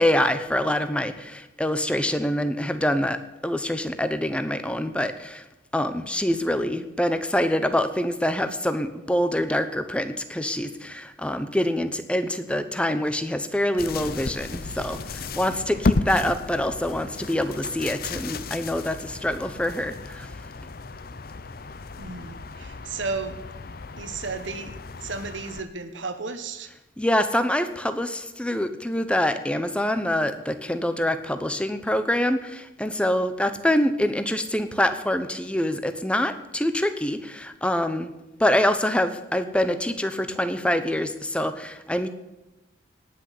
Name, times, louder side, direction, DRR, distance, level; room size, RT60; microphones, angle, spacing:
voice 1, 0.0-3.2 3.4-5.4 5.7-20.3 27.0-38.1 38.4-42.1, left 1 dB, 5° left, 10 dB, 0.8 m, -25 dB
sound 1, 13.8-25.6, left 3 dB, 50° left, 0.6 m, -33 dB
voice 2, 22.0-23.4 24.0-26.7, right 4 dB, 80° right, 9 dB, 1.4 m, -34 dB
18.5 x 6.3 x 8.5 m, 0.98 s
head